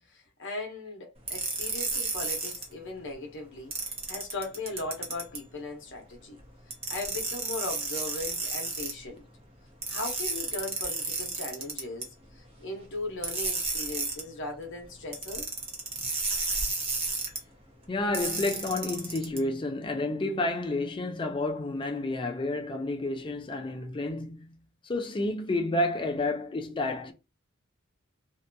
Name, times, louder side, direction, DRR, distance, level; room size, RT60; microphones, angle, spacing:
voice 1, 0.1-6.4 6.9-9.2 9.9-15.5, left 2 dB, 60° left, 0.8 m, -38 dB
sound 1, 1.3-2.6 3.7-5.4 6.7-8.9 9.8-12.0 13.2-14.2 15.1-17.4 18.1-19.4, right 3 dB, 25° right, 0.7 m, -32 dB
voice 2, 17.9-27.1, left 2 dB, 25° left, 0.4 m, -30 dB
2.6 x 2.2 x 2.6 m
head